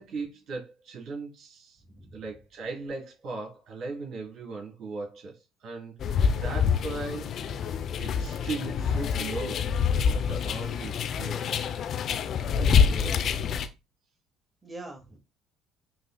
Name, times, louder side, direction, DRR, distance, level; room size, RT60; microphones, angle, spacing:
voice 1, 0.0-1.8 2.1-7.4 8.0-9.7 10.1-11.7 12.5-13.3, right 4 dB, 50° right, 3.8 m, -38 dB
voice 2, 1.9-2.2 6.0-6.5 7.5-8.0 14.6-15.2, right 2 dB, 25° right, 2.2 m, -46 dB
sound 1, 6.0-13.7, left 7 dB, 50° left, 0.7 m, -26 dB
9.9 x 4.0 x 2.4 m
figure-of-eight pair, 55°, 0 cm